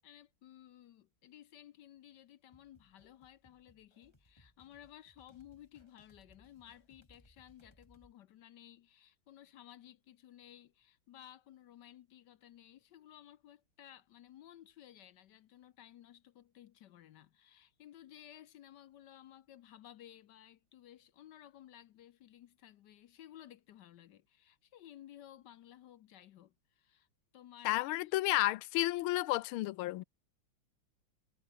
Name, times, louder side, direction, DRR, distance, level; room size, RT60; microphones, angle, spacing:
voice 1, 0.0-27.1 27.3-27.8, left 11 dB, 70° left, 1.2 m, -57 dB
sound 1, 2.5-8.1, left 1 dB, 10° left, 5.1 m, -67 dB
voice 2, 27.6-30.0, left 18 dB, 85° left, 1.4 m, -32 dB
omnidirectional pair, 2.3 m